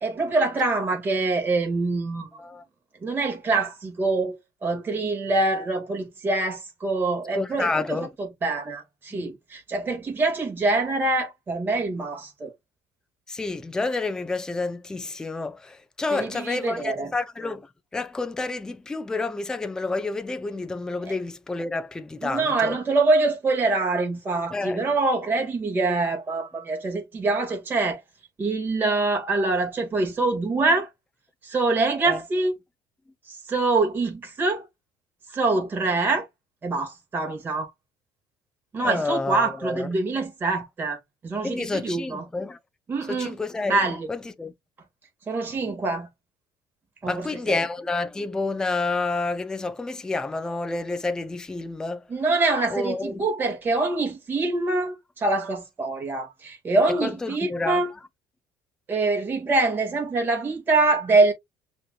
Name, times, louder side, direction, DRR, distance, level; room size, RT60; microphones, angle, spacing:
voice 1, 0.0-2.3 3.0-4.4 4.6-12.5 16.1-17.1 21.0-21.2 22.2-28.0 28.4-30.9 31.4-32.5 33.3-34.7 35.3-36.3 36.6-37.7 38.7-41.0 41.2-42.3 42.9-43.4 43.6-44.1 45.3-46.1 47.0-47.6 52.1-57.9 58.9-61.3, right 3 dB, 25° right, 1.9 m, -25 dB
voice 2, 7.3-8.1 9.1-9.3 13.3-17.7 17.9-22.8 24.5-24.9 32.0-32.2 38.8-39.9 41.4-42.6 43.1-44.5 47.0-52.1 52.7-53.3 57.0-57.8, left 3 dB, 10° left, 0.4 m, -29 dB
6.5 x 3.0 x 2.3 m
cardioid pair, 155°, 8 cm